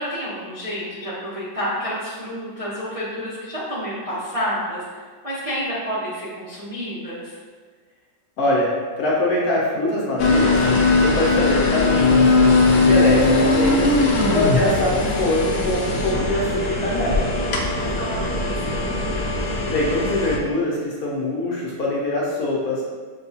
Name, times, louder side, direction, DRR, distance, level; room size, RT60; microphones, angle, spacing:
voice 1, 0.0-4.9 5.2-7.4 17.3-19.2, equal, 65° right, -10 dB, 0.3 m, -30 dB
voice 2, 8.4-8.7 9.0-10.6 11.0-12.3 12.8-13.9 14.3-17.3 19.6-22.8, left 1 dB, 65° left, -5 dB, 1.0 m, -23 dB
sound 1, 10.2-20.4, left 3 dB, 90° left, 0.7 m, -19 dB
5.9 x 2.3 x 2.8 m, 1.5 s
omnidirectional pair, 2.1 m